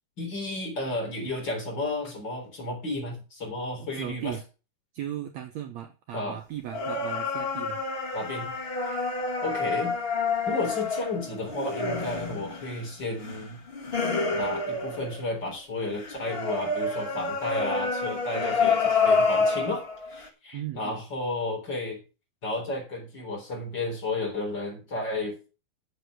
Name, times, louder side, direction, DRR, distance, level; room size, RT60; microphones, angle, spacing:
voice 1, 0.2-4.4 6.1-6.4 8.1-8.5 8.8-9.0 9.4-10.0 10.5-13.6 14.3-22.0 22.4-25.5, left 2 dB, 30° left, 1 dB, 4.1 m, -33 dB
voice 2, 3.9-4.4 4.9-7.8 20.5-21.0, right 11 dB, 70° right, 6 dB, 1.7 m, -37 dB
sound 1, 6.7-15.5 16.0-20.3, left 4 dB, 90° left, 0.5 m, -28 dB
8.2 x 7.6 x 6.3 m, 0.33 s
omnidirectional pair, 3.9 m